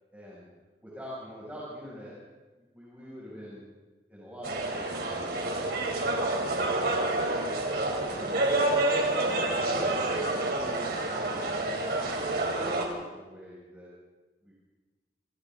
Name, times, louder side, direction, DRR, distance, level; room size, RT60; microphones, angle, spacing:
voice 1, 0.1-0.5 0.8-2.2 2.6-3.7 4.1-5.8 7.6-7.8 8.0-8.6 8.9-12.9 13.1-13.9 14.4-14.5, equal, 10° right, -7 dB, 6.6 m, -45 dB
sound 1, 4.4-12.9, right 2 dB, 60° right, 4.0 m, -28 dB
27.5 x 26.5 x 3.9 m, 1.3 s
head